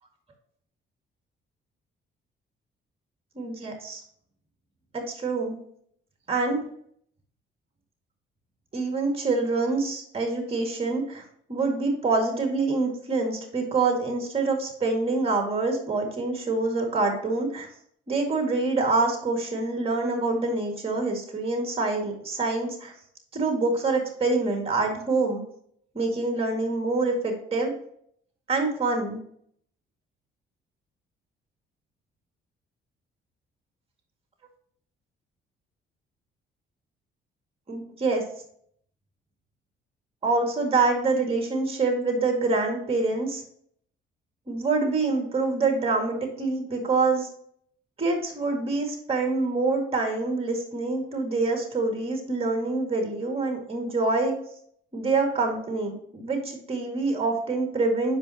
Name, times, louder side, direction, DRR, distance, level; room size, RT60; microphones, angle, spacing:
voice 1, 3.4-4.0 4.9-5.6 6.3-6.6 8.7-11.2 11.5-17.7 18.1-22.9 23.3-25.4 25.9-27.7 28.5-29.2 37.7-38.2 40.2-43.4 44.5-47.3 48.0-54.3 54.9-58.2, right 3 dB, 30° right, 3 dB, 2.1 m, -26 dB
9.6 x 5.3 x 2.9 m, 0.65 s
cardioid pair, 90°, 20 cm